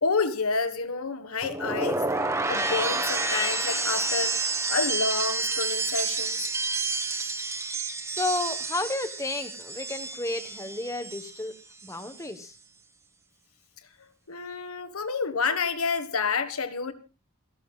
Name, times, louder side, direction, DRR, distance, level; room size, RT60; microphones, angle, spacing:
voice 1, 0.0-4.4 4.7-6.5 14.3-16.9, left 4 dB, 80° left, 1.5 m, -29 dB
sound 1, 1.4-11.5 11.8-12.2, right 3 dB, 15° right, 1.3 m, -29 dB
voice 2, 8.1-11.5 11.8-12.5, left 2 dB, 15° left, 1.2 m, -32 dB
27.5 x 12.5 x 2.4 m
head